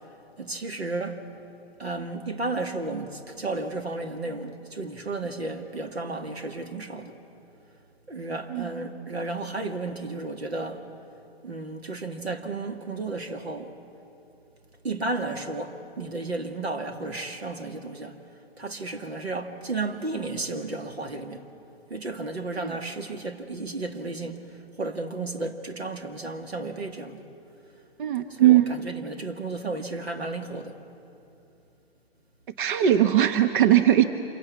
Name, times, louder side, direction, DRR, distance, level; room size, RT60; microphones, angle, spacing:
voice 1, 0.4-1.2 1.8-7.2 8.1-10.9 11.4-13.8 14.8-21.5 21.9-27.3 28.3-30.8, right 3 dB, 85° right, 2.0 m, -33 dB
voice 2, 28.0-28.7 32.6-34.1, right 12 dB, 55° right, 1.1 m, -19 dB
27.0 x 23.5 x 8.4 m
figure-of-eight pair, 125°, 31 cm